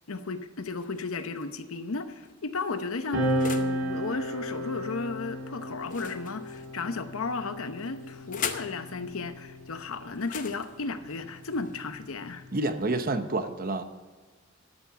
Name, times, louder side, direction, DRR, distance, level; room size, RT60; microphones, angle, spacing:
voice 1, 0.1-3.3 3.5-12.5, left 3 dB, 80° left, 10 dB, 0.8 m, -34 dB
sound 1, 0.6-1.4 2.2-3.8 5.8-6.9 7.8-8.8 10.1-12.1, left 7 dB, 40° left, 0.7 m, -41 dB
sound 2, 3.1-10.0 11.0-12.9, equal, 60° right, 2.8 m, -34 dB
voice 2, 12.5-13.8, right 2 dB, 45° right, 10 dB, 0.7 m, -28 dB
12.5 x 7.1 x 6.8 m, 1.4 s
head